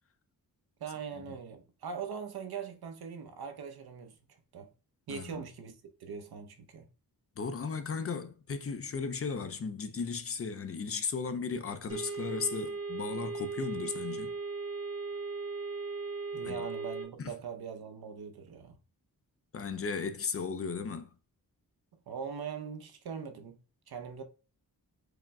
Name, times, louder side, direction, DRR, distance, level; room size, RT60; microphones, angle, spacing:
voice 1, 0.8-4.2 4.5-4.7 5.1-6.9 16.3-18.8 22.1-23.6 23.9-24.2, right 6 dB, 85° right, 0.7 m, -41 dB
voice 2, 5.1-5.4 7.4-14.4 16.4-16.6 17.2-17.3 19.5-21.1, left 5 dB, 40° left, 0.4 m, -36 dB
sound 1, 11.9-17.0, right 4 dB, 40° right, 0.9 m, -37 dB
4.8 x 2.1 x 3.5 m
wide cardioid pair, 170°, 37 cm